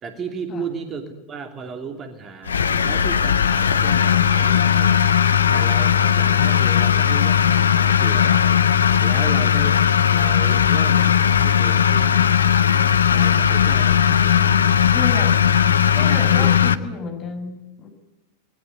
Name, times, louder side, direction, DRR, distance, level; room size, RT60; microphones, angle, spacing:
voice 1, 0.0-2.6 2.8-5.0 5.5-8.7 9.0-12.3 13.1-14.8 15.9-16.5, right 5 dB, 25° right, 6 dB, 2.8 m, -34 dB
sound 1, 2.5-16.8, left 8 dB, 70° left, 1.0 m, -17 dB
voice 2, 14.9-15.4 15.9-17.9, left 5 dB, 30° left, 5 dB, 5.9 m, -31 dB
28.0 x 20.5 x 9.8 m, 0.98 s
figure-of-eight pair, 90°, 0 cm